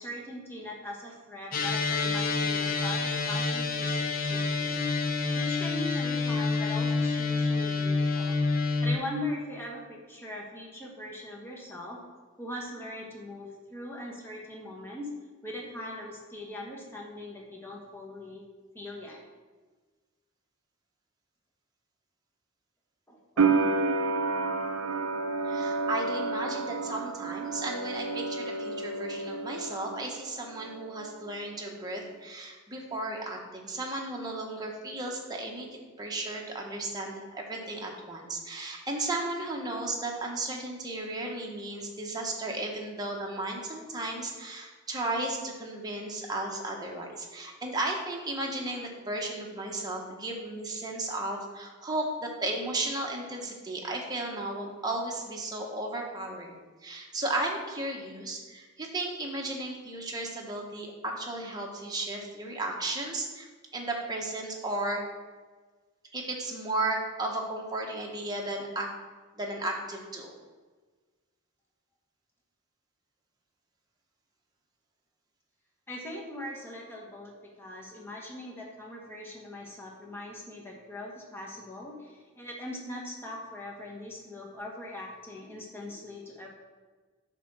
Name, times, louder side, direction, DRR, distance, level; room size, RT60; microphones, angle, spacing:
voice 1, 0.0-4.8 5.3-8.4 8.8-12.0 12.4-15.1 15.4-18.4 18.7-19.2 23.1-24.0 24.8-25.0 75.9-77.3 77.6-86.5, left 1 dB, 10° left, -3 dB, 1.3 m, -41 dB
sound 1, 1.5-9.0, left 4 dB, 40° left, 0.7 m, -28 dB
sound 2, 23.4-30.2 30.4-31.3, right 4 dB, 90° right, 0.6 m, -30 dB
voice 2, 25.4-35.7 36.0-63.5 63.7-65.0 66.1-68.9 69.3-70.3, right 2 dB, 20° right, 0 dB, 1.1 m, -34 dB
8.4 x 3.7 x 6.1 m, 1.3 s
head